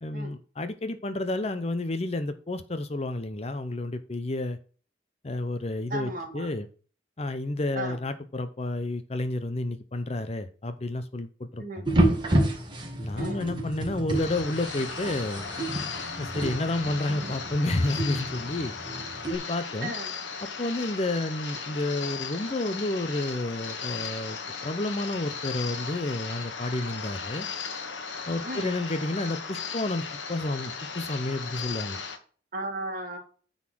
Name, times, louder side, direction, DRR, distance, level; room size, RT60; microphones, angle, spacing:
voice 1, 0.0-4.6 5.2-6.7 7.2-11.9 13.0-15.5 16.2-18.7 19.3-19.9 20.6-27.5 28.3-32.0, left 2 dB, 35° left, 11 dB, 0.6 m, -30 dB
voice 2, 5.9-6.5 7.8-8.0 11.6-11.9 13.2-13.4 19.8-20.1 28.4-28.7 32.5-33.2, right 1 dB, 45° right, 2 dB, 2.3 m, -35 dB
sound 1, 11.9-19.4, right 1 dB, 25° right, 1.8 m, -29 dB
sound 2, 14.1-32.2, left 5 dB, 90° left, 1.3 m, -37 dB
9.5 x 4.0 x 6.2 m, 0.40 s
head